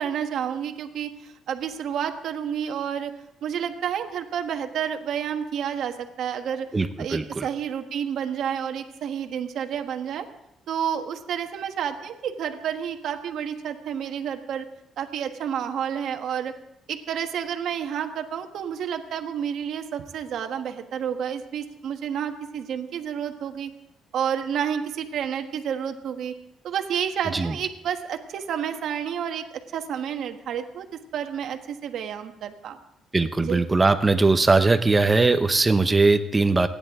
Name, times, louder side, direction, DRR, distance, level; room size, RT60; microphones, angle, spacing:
voice 1, 0.0-3.1 3.4-6.7 7.0-10.3 10.7-14.6 15.0-16.5 16.9-23.7 24.1-26.3 26.6-30.9 31.1-32.8 33.5-33.6, right 8 dB, 75° right, 6 dB, 1.3 m, -30 dB
voice 2, 6.7-7.5 27.3-27.6 33.1-36.7, right 3 dB, 25° right, 10 dB, 0.9 m, -20 dB
27.5 x 10.5 x 3.7 m, 0.82 s
cardioid pair, 90°, 0 cm